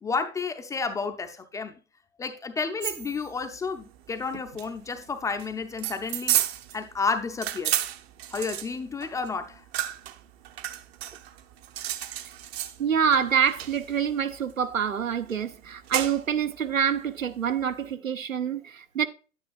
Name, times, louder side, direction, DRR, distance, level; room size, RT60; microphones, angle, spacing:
voice 1, 0.0-1.8 2.2-6.4 6.7-7.8 8.3-9.6, left 4 dB, 10° left, 0.5 m, -31 dB
sound 1, 2.8-17.9, right 13 dB, 55° right, 0.8 m, -34 dB
voice 2, 12.8-19.1, right 7 dB, 90° right, 0.9 m, -26 dB
9.6 x 9.1 x 2.4 m
hypercardioid pair, 110°, 38 cm